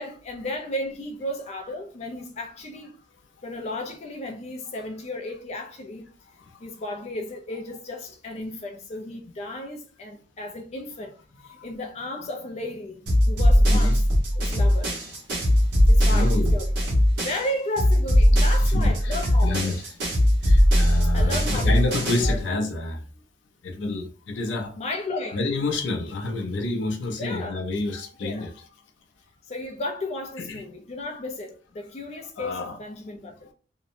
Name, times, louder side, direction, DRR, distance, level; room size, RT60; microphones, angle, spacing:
voice 1, 0.0-3.0 3.4-6.1 6.6-14.0 14.4-15.2 15.9-16.9 17.2-19.8 21.1-22.6 24.8-25.4 27.2-27.6 28.2-28.5 29.5-33.5, left 1 dB, 35° left, 0.4 m, -34 dB
sound 1, 13.1-17.5 17.8-22.4, equal, 70° right, 1.0 m, -20 dB
voice 2, 16.1-16.6 18.6-19.1 19.4-19.9 20.4-23.0 23.6-24.7 25.3-28.7 30.4-30.6 32.4-32.8, left 2 dB, 85° left, 0.5 m, -28 dB
2.7 x 2.1 x 2.5 m
head